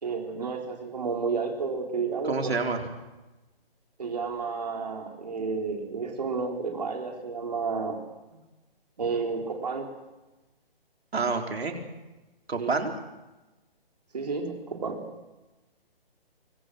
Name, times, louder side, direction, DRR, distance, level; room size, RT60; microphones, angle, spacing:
voice 1, 0.0-2.5 4.0-8.0 9.0-9.9 12.6-12.7 14.1-15.0, right 4 dB, 40° right, 2 dB, 4.0 m, -31 dB
voice 2, 2.3-2.8 11.1-11.8 12.5-12.9, right 4 dB, 80° right, 3 dB, 4.0 m, -28 dB
26.0 x 24.5 x 6.3 m, 1.1 s
hypercardioid pair, 180°, 31 cm